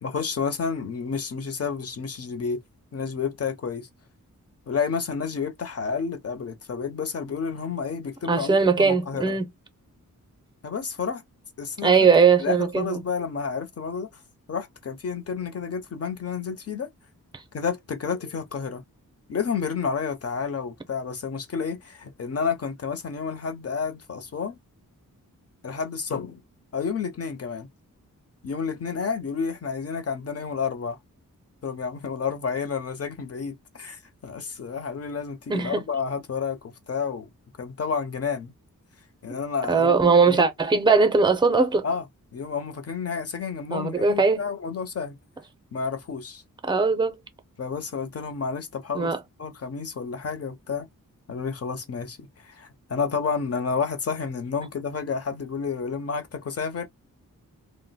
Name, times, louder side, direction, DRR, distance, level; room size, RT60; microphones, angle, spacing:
voice 1, 0.0-2.6 2.9-3.9 4.7-9.4 10.6-11.2 11.6-12.1 12.4-14.1 14.5-16.9 17.5-18.8 19.3-24.6 25.6-26.4 26.7-27.7 28.4-31.0 31.6-37.3 37.6-38.5 39.2-40.4 41.8-42.0 42.3-45.2 45.7-46.4 47.6-49.1 49.4-50.9 51.3-52.2 52.4-56.9, left 5 dB, 45° left, 0.7 m, -30 dB
voice 2, 8.3-9.5 11.8-13.0 35.5-35.8 39.7-41.8 43.7-44.4 46.6-47.2 48.9-49.2, right 4 dB, 15° right, 0.6 m, -20 dB
2.5 x 2.1 x 4.0 m
wide cardioid pair, 115°, 33 cm